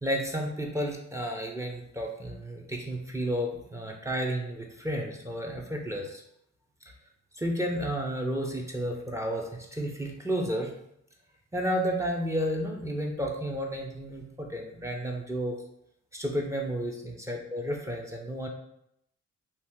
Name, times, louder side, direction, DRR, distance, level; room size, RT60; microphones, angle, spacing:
voice 1, 0.0-6.2 7.3-10.7 11.5-15.6 16.1-18.5, equal, 10° right, 0 dB, 0.6 m, -32 dB
2.8 x 2.5 x 3.5 m, 0.75 s
cardioid pair, 90°, 30 cm